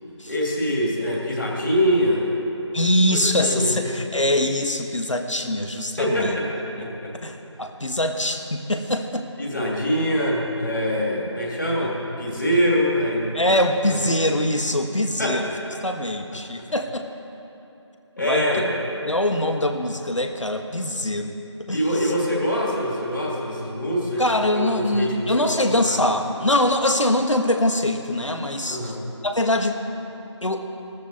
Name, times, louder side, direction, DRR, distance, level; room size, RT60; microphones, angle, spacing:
voice 1, 0.3-2.3 3.1-3.8 6.0-6.5 6.8-7.1 9.4-13.5 13.9-14.1 15.2-15.4 16.6-16.7 18.2-18.7 21.7-24.2 24.5-26.1 28.7-29.0, equal, 40° left, -2 dB, 2.7 m, -24 dB
voice 2, 2.7-6.4 7.2-9.3 13.3-15.4 15.8-17.1 18.2-18.5 19.0-21.4 21.7-22.1 24.2-28.9 29.2-29.8 30.4-30.7, left 1 dB, 90° left, 5 dB, 1.4 m, -23 dB
16.5 x 13.5 x 4.2 m, 2.9 s
figure-of-eight pair, 170°, 15 cm